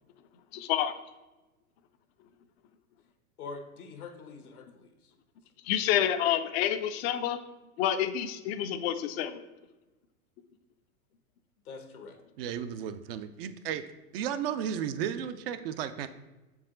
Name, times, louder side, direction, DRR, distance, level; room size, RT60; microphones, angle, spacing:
voice 1, 0.5-0.9 5.6-7.4 7.8-9.4, left 10 dB, 45° left, 9 dB, 0.6 m, -28 dB
voice 2, 3.4-5.1 11.6-12.2, left 4 dB, 80° left, 6 dB, 1.3 m, -44 dB
voice 3, 12.4-13.8 14.1-16.1, right 9 dB, 45° right, 10 dB, 0.5 m, -34 dB
7.1 x 4.8 x 3.7 m, 1.1 s
hypercardioid pair, 105°, 44 cm